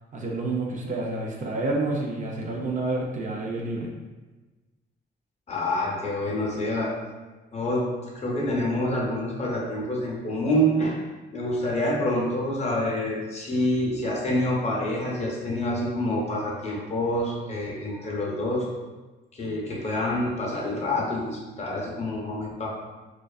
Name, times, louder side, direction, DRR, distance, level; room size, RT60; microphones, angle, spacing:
voice 1, 0.1-3.9, right 2 dB, 40° right, -1 dB, 0.4 m, -29 dB
voice 2, 5.5-7.0 7.5-11.0 11.3-18.7 19.3-22.7, left 1 dB, 35° left, -3 dB, 0.6 m, -27 dB
2.4 x 2.3 x 2.3 m, 1.2 s
cardioid pair, 90°, 20 cm